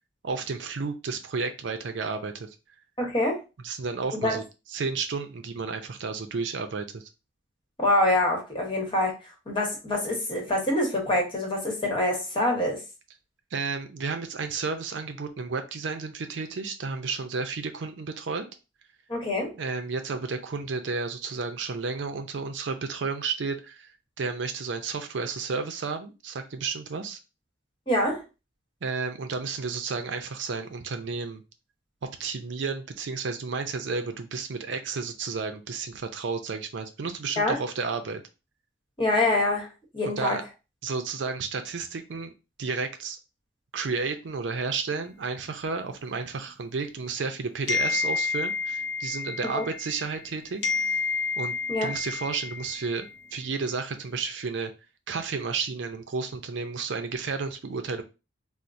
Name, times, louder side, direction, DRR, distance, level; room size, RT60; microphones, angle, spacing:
voice 1, 0.2-2.5 3.6-4.4 4.7-7.1 13.5-18.5 19.5-27.2 28.8-31.4 32.2-38.2 40.0-40.4 40.8-42.3 42.6-43.2 43.7-50.9 51.4-54.7 55.1-58.0, right 4 dB, 70° right, 7 dB, 0.5 m, -32 dB
voice 2, 3.0-3.4 4.2-4.4 7.8-9.1 9.5-12.8 19.1-19.5 27.9-28.2 37.4-37.6 39.0-39.7 39.9-40.4 49.4-49.6 51.7-51.9, left 1 dB, 30° left, 0 dB, 1.1 m, -25 dB
sound 1, 47.7-50.3 50.6-53.2, left 4 dB, 65° left, 0.7 m, -30 dB
4.3 x 2.0 x 2.5 m, 0.29 s
head